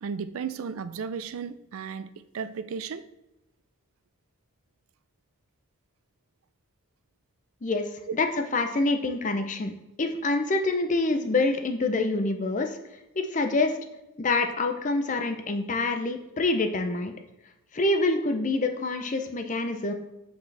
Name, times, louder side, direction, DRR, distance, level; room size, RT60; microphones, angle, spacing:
voice 1, 0.0-3.1, right 6 dB, 75° right, 13 dB, 0.4 m, -35 dB
voice 2, 8.5-9.7 10.0-12.8 13.2-13.8 14.2-17.1 17.7-19.9, left 2 dB, 35° left, 6 dB, 0.5 m, -26 dB
8.2 x 4.5 x 3.3 m, 0.95 s
head